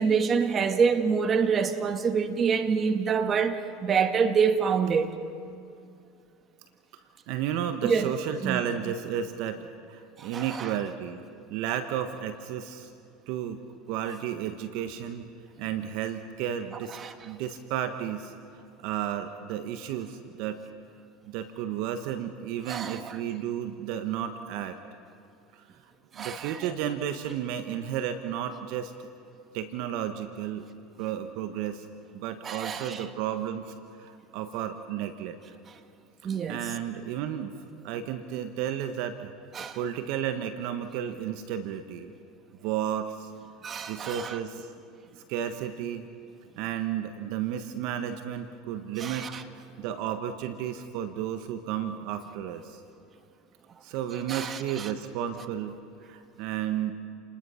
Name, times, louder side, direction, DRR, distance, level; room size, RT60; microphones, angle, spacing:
voice 1, 0.0-5.1 7.8-8.1 8.4-8.6 10.2-10.7 17.0-17.1 22.7-23.2 26.1-26.7 32.4-33.1 36.2-36.6 39.5-39.8 43.6-44.4 49.0-49.4 54.3-54.9, right 6 dB, 35° right, 1.7 m, -27 dB
voice 2, 7.3-11.2 11.5-12.9 13.3-13.6 13.9-15.3 15.6-17.0 17.2-18.3 18.8-20.6 21.3-24.8 25.5-25.6 26.2-28.9 29.5-30.6 31.0-31.9 32.1-35.4 36.2-37.5 37.8-39.3 39.8-42.1 42.6-43.3 43.9-44.7 45.3-46.1 46.6-49.3 49.6-52.8 53.8-55.8 56.1-56.9, right 10 dB, 65° right, 1.2 m, -32 dB
29.5 x 20.0 x 5.7 m
hypercardioid pair, 85°, 0 cm